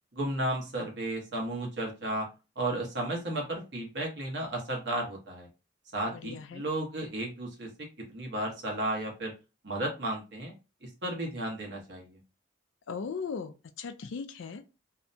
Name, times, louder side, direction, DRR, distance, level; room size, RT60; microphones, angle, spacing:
voice 1, 0.1-2.3 2.6-5.5 5.9-7.7 8.1-9.3 9.6-10.5 10.8-12.2, right 1 dB, 60° right, 1.0 m, -33 dB
voice 2, 6.1-6.7 12.9-14.6, left 5 dB, 75° left, 0.4 m, -38 dB
2.7 x 2.2 x 2.6 m
head